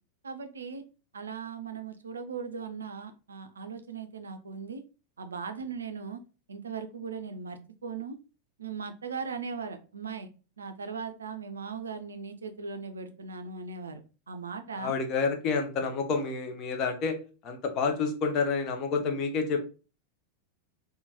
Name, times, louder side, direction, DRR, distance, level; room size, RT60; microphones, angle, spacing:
voice 1, 0.2-0.8 1.1-4.8 5.2-6.2 6.5-8.2 8.6-10.3 10.6-14.0 14.3-14.9, right 5 dB, 70° right, 8 dB, 0.4 m, -38 dB
voice 2, 14.8-17.1 17.4-19.6, left 4 dB, 35° left, 4 dB, 0.6 m, -29 dB
2.9 x 2.2 x 2.8 m, 0.33 s
figure-of-eight pair, 90°, 0 cm